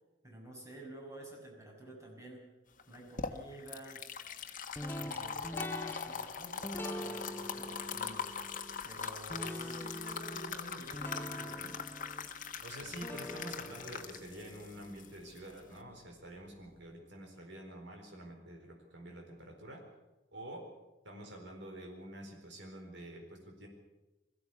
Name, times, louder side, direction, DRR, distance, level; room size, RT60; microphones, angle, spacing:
voice 1, 0.2-2.4 2.9-4.0 5.0-8.3 8.8-11.7, right 1 dB, 15° right, -1 dB, 6.3 m, -50 dB
sound 1, 2.8-15.8, left 6 dB, 45° left, 1.4 m, -42 dB
sound 2, 4.7-15.8, left 1 dB, 10° left, 0.8 m, -45 dB
voice 2, 9.5-9.8 12.6-19.8 20.3-20.6 21.0-23.7, right 1 dB, 65° right, 1 dB, 4.5 m, -48 dB
22.0 x 15.5 x 8.3 m, 1.0 s
head